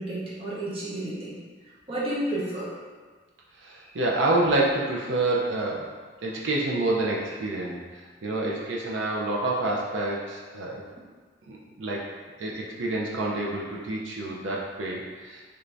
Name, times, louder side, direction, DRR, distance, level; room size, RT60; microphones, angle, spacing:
voice 1, 0.0-1.4 1.9-2.8, right 1 dB, 30° right, -7 dB, 0.6 m, -31 dB
voice 2, 3.6-5.9 6.2-7.8 8.2-10.8 11.5-12.0 12.4-15.4, right 2 dB, 80° right, -3 dB, 0.5 m, -27 dB
3.4 x 2.5 x 3.3 m, 1.5 s
head